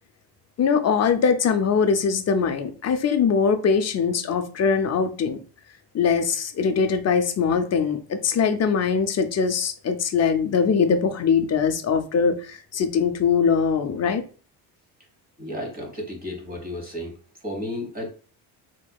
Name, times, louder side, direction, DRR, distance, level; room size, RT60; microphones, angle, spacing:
voice 1, 0.6-5.4 5.9-14.2, left 6 dB, 35° left, 0.6 m, -22 dB
voice 2, 15.4-17.1 17.4-18.1, left 1 dB, 20° right, 1.3 m, -32 dB
3.3 x 3.0 x 2.3 m
cardioid pair, 85°, 46 cm